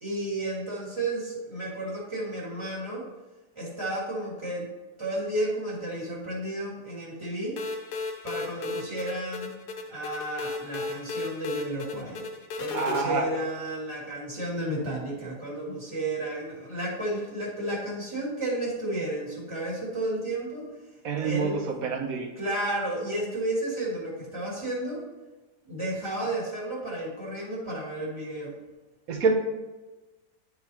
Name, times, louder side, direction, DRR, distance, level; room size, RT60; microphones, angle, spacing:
voice 1, 0.0-3.1 3.6-4.7 5.0-7.6 8.2-9.5 9.9-12.3 12.6-20.7 21.2-21.6 22.4-25.0 25.6-28.5, right 1 dB, 15° right, -6 dB, 2.0 m, -32 dB
sound 1, 7.6-13.0, left 3 dB, 70° left, 1.3 m, -35 dB
voice 2, 12.7-13.3 21.0-22.3 26.2-26.3 29.1-29.3, right 5 dB, 60° right, 3 dB, 1.2 m, -27 dB
10.5 x 3.9 x 3.0 m, 1.2 s
omnidirectional pair, 1.9 m